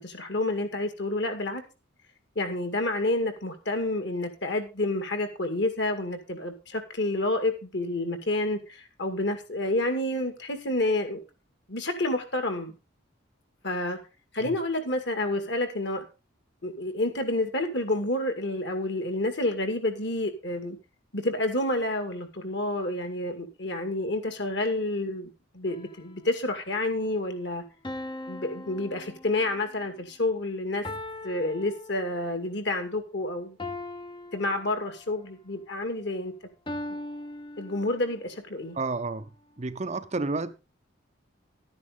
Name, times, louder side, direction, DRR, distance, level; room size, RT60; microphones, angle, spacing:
voice 1, 0.0-1.6 2.4-11.2 11.7-12.8 13.6-14.0 14.3-16.0 16.6-20.8 21.1-27.6 28.3-30.9 31.2-33.6 34.3-36.3 36.9-37.0 37.6-38.8, left 2 dB, 55° left, 2.1 m, -29 dB
sound 1, 25.7-26.5 27.8-29.7 30.8-32.5 33.6-35.3 36.7-38.3, left 2 dB, 25° left, 0.6 m, -40 dB
voice 2, 38.7-39.3 39.6-40.6, right 3 dB, 35° right, 0.6 m, -31 dB
12.0 x 9.6 x 3.8 m
head